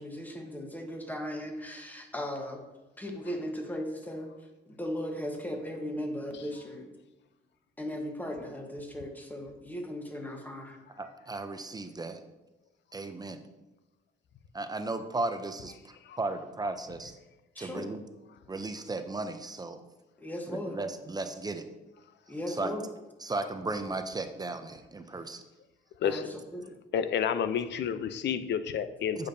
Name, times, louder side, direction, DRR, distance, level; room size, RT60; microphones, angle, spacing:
voice 1, 0.0-2.7 3.0-4.3 4.7-6.9 7.8-10.8 17.5-17.9 20.2-20.8 22.3-22.9 26.0-26.2 26.5-26.6, equal, 10° left, 3 dB, 1.1 m, -37 dB
voice 2, 11.0-12.2 12.9-13.4 14.5-15.8 16.2-17.1 17.6-18.0 18.5-19.8 20.5-21.7 22.5-22.7 23.2-25.4 29.2-29.3, right 2 dB, 20° right, 8 dB, 0.5 m, -35 dB
voice 3, 26.0-26.3 26.9-29.3, left 8 dB, 60° left, 12 dB, 0.5 m, -30 dB
8.3 x 5.2 x 2.7 m, 1.0 s
cardioid pair, 90°, 20 cm